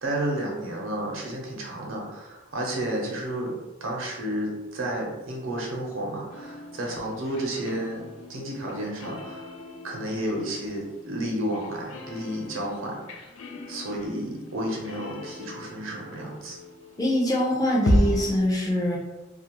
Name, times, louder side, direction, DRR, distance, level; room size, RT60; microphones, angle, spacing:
voice 1, 0.0-8.0 8.3-9.5 9.8-13.2 13.7-16.6, right 1 dB, 80° right, -1 dB, 0.6 m, -31 dB
sound 1, 6.3-17.2 17.9-18.4, left 1 dB, 80° left, 0.4 m, -33 dB
voice 2, 17.0-19.0, equal, 20° left, -3 dB, 0.4 m, -23 dB
2.4 x 2.1 x 2.9 m, 1.1 s
head